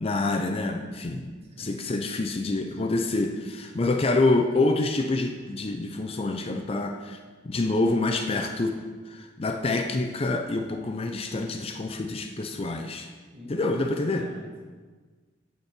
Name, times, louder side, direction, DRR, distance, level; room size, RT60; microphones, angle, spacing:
voice 1, 0.0-1.3 1.6-7.2 7.4-8.8 9.1-13.1 13.5-14.2, left 2 dB, 30° left, 4 dB, 0.5 m, -27 dB
voice 2, 1.6-2.1 13.3-14.7, left 1 dB, 35° right, -3 dB, 1.6 m, -45 dB
8.5 x 4.4 x 7.2 m, 1.4 s
head